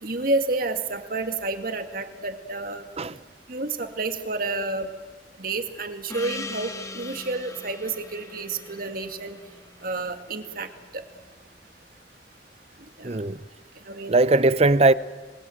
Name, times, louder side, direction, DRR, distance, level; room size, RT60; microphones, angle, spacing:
voice 1, 0.0-2.9 3.5-4.9 5.4-9.4 9.8-10.7 13.0-13.2 13.9-14.4, right 3 dB, 55° right, 2.0 m, -30 dB
Gong, 6.1-10.9, left 2 dB, 20° left, 1.4 m, -40 dB
voice 2, 13.0-13.4 14.1-14.9, right 2 dB, 35° right, 0.7 m, -19 dB
29.0 x 20.0 x 7.8 m
head